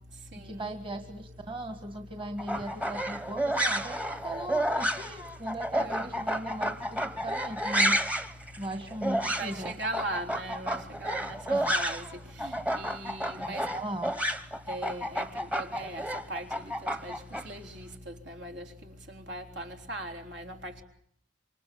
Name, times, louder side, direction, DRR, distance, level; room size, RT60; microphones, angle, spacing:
voice 1, 0.4-8.1 8.6-9.7 11.5-11.8 13.5-14.1, right 1 dB, 30° right, 2.0 m, -38 dB
sound 1, 2.4-12.1 12.4-17.4, right 1 dB, 5° right, 1.2 m, -31 dB
voice 2, 9.4-11.3 11.7-12.0 12.4-13.6 14.7-15.3 15.6-16.0 16.3-16.5 16.8-17.1 17.5-18.6 19.3-20.7, right 2 dB, 70° right, 4.1 m, -38 dB
27.5 x 25.0 x 8.7 m
head